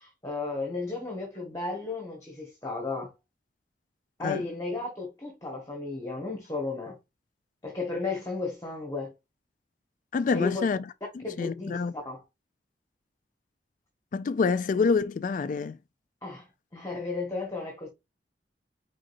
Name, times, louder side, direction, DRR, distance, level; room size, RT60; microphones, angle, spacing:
voice 1, 0.0-3.1 4.2-7.0 7.6-9.1 10.3-10.6 11.2-12.2 16.2-16.5 16.7-17.9, left 3 dB, 20° left, 1.4 m, -34 dB
voice 2, 10.1-10.8 11.1-11.9 14.1-15.8, left 4 dB, 50° left, 0.3 m, -27 dB
5.1 x 3.8 x 2.5 m
head